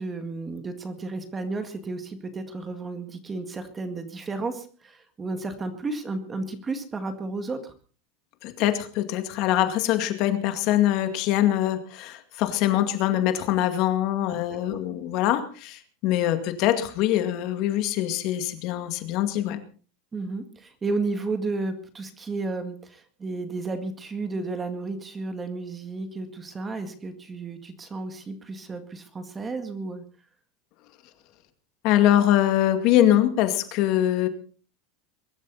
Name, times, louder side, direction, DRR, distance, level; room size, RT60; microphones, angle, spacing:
voice 1, 0.0-7.7 14.4-14.8 20.1-30.0, right 3 dB, 15° right, 8 dB, 1.9 m, -33 dB
voice 2, 8.4-19.6 31.8-34.3, left 12 dB, 45° left, 8 dB, 2.1 m, -23 dB
23.0 x 12.5 x 4.1 m, 0.40 s
supercardioid pair, 160°, 0 cm